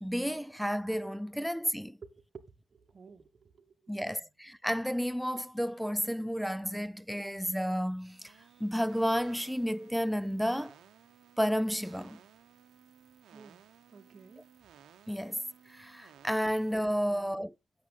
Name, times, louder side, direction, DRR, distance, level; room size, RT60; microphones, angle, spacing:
voice 1, 0.0-2.0 3.9-8.3 8.6-10.7 11.4-12.2 15.1-15.4 15.7-17.5, equal, ahead, 0.3 m, -31 dB
voice 2, 2.1-4.3 13.3-13.6 13.9-14.4 17.1-17.4, right 5 dB, 40° right, 1.0 m, -55 dB
sound 1, 7.8-16.8, right 9 dB, 70° right, 0.8 m, -58 dB
8.4 x 5.7 x 3.6 m
cardioid pair, 90°, 0 cm